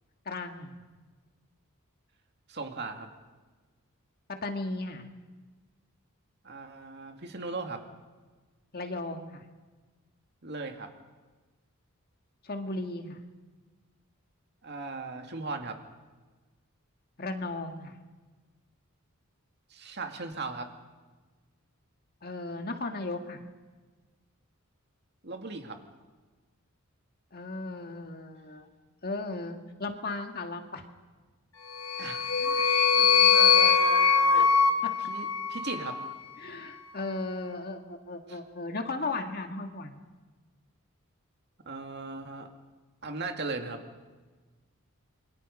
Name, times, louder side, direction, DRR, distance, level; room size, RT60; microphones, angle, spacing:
voice 1, 0.3-0.8 4.3-5.1 8.7-9.4 12.4-13.2 17.2-17.9 22.2-23.4 27.3-28.7 29.0-30.8 33.9-34.1 34.3-34.5 36.4-40.0, left 2 dB, 45° left, 5 dB, 1.8 m, -36 dB
voice 2, 2.5-3.1 6.4-7.8 10.4-10.9 14.6-15.8 19.7-20.7 25.2-25.8 32.0-34.4 35.0-36.0 38.3-38.4 41.7-42.5 43.0-43.8, right 3 dB, 50° right, 4 dB, 2.3 m, -38 dB
sound 1, 31.7-36.1, left 6 dB, 65° left, 1.3 m, -22 dB
27.5 x 23.5 x 5.4 m, 1.3 s
head